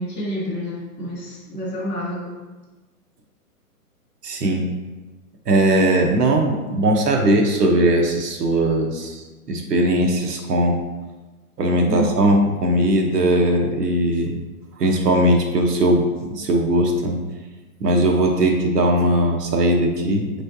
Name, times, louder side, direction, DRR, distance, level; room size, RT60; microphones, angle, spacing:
voice 1, 0.0-2.3 11.9-12.1, equal, 15° right, -14 dB, 0.5 m, -28 dB
voice 2, 4.2-4.6 5.5-10.8 11.6-14.4 14.8-16.0 16.3-17.2 17.8-20.4, right 1 dB, 90° right, 1 dB, 1.0 m, -19 dB
4.5 x 3.2 x 2.7 m, 1.2 s
hypercardioid pair, 165°, 46 cm